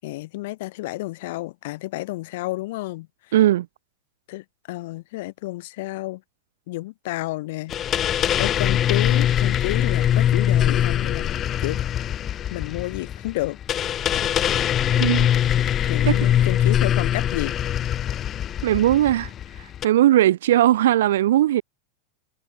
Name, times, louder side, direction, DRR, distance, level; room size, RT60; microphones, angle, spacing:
voice 1, 0.0-3.3 4.3-6.2 6.7-11.3 11.6-11.8 12.5-13.6 15.9-17.6, left 19 dB, 50° left, 5.8 m, -31 dB
voice 2, 3.3-3.7 15.0-15.3 16.1-16.2 18.6-19.3 19.8-21.6, right 13 dB, 60° right, 3.6 m, -18 dB
sound 1, 7.7-19.8, left 10 dB, 30° left, 1.3 m, -22 dB
figure-of-eight pair, 90°, 0 cm